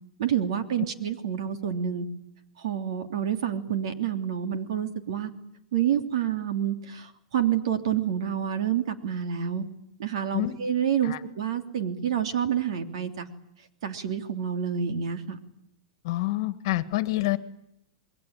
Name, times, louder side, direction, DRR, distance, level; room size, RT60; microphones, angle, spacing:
voice 1, 0.2-2.1 2.6-5.3 5.7-9.6 10.0-13.3 13.8-15.4, right 9 dB, 60° right, 7 dB, 3.2 m, -28 dB
voice 2, 16.0-17.4, left 18 dB, 45° left, 13 dB, 1.7 m, -27 dB
27.5 x 22.0 x 9.0 m, 0.76 s
supercardioid pair, 170°, 3 cm